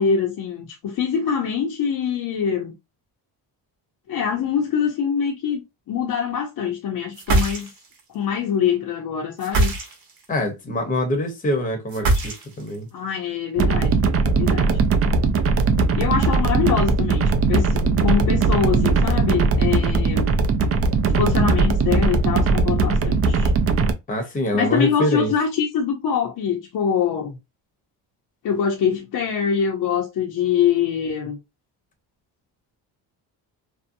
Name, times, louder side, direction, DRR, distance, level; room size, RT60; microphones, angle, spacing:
voice 1, 0.0-2.7 4.1-5.6 5.9-7.7 8.1-9.7 12.9-14.0 14.3-14.8 15.9-20.3 21.2-23.5 24.5-27.4 28.4-31.4, left 7 dB, 55° left, 0.6 m, -24 dB
sound 1, 7.1-8.0 9.4-10.2 11.9-12.8, right 2 dB, 55° right, 0.9 m, -22 dB
voice 2, 10.3-12.9 24.1-25.3, left 1 dB, 20° left, 0.8 m, -24 dB
sound 2, 13.6-23.9, right 4 dB, 35° right, 0.4 m, -19 dB
2.6 x 2.1 x 2.5 m
cardioid pair, 100°, 43 cm